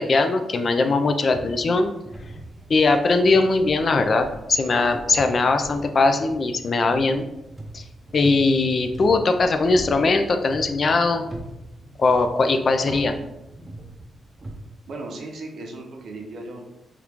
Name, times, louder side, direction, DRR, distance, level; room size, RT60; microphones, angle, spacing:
voice 1, 0.0-1.9 2.7-7.2 7.7-7.8 8.1-11.2 12.0-13.2, left 3 dB, 45° left, 7 dB, 0.3 m, -20 dB
sound 1, 1.3-14.6, right 1 dB, 25° right, 0.5 m, -41 dB
voice 2, 14.9-16.6, right 2 dB, 70° right, 1 dB, 0.7 m, -36 dB
2.9 x 2.4 x 3.4 m, 0.91 s
cardioid pair, 100°, 0 cm